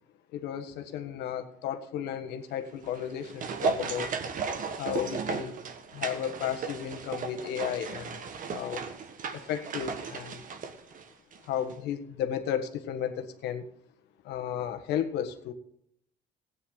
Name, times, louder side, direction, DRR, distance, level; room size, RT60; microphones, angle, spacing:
voice 1, 0.3-4.1 4.8-5.6 5.9-8.2 8.5-8.8 9.3-10.4 11.4-13.6 14.2-15.5, left 9 dB, 85° left, 8 dB, 1.5 m, -33 dB
sound 1, 2.8-11.4 11.7-11.8, right 5 dB, 50° right, 1.6 m, -35 dB
16.0 x 9.6 x 3.9 m, 0.70 s
cardioid pair, 110°, 17 cm